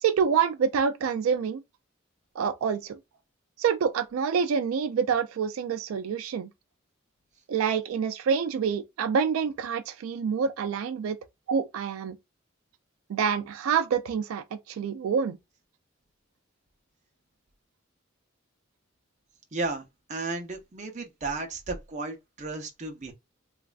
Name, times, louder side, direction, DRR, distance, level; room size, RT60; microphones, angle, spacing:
voice 1, 0.0-1.6 2.4-3.0 3.6-6.5 7.5-11.2 11.5-12.2 13.1-15.4, right 6 dB, 90° right, 0.3 m, -27 dB
voice 2, 19.5-19.8 20.1-23.1, right 3 dB, 35° right, 0.6 m, -34 dB
3.1 x 2.3 x 2.3 m
head